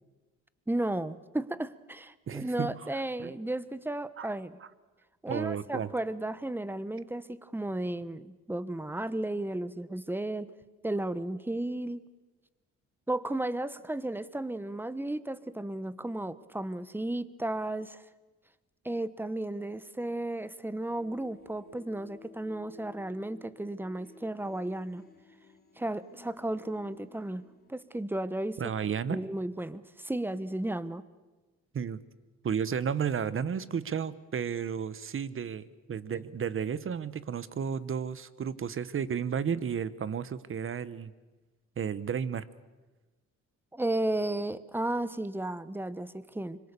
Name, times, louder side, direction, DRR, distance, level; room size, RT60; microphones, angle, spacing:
voice 1, 0.7-4.6 5.2-10.5 10.8-12.0 13.1-18.0 18.8-25.0 25.8-27.4 27.7-28.6 29.1-31.0 43.7-46.6, right 1 dB, 5° right, 15 dB, 1.0 m, -34 dB
voice 2, 2.3-3.3 4.2-4.3 5.3-5.9 28.6-29.2 31.7-32.0 32.4-41.1 41.8-42.5, right 7 dB, 45° right, 16 dB, 1.1 m, -33 dB
sound 1, 20.9-27.9, left 4 dB, 30° left, 2.8 m, -55 dB
25.5 x 22.5 x 6.8 m, 1.2 s
cardioid pair, 90°, 30 cm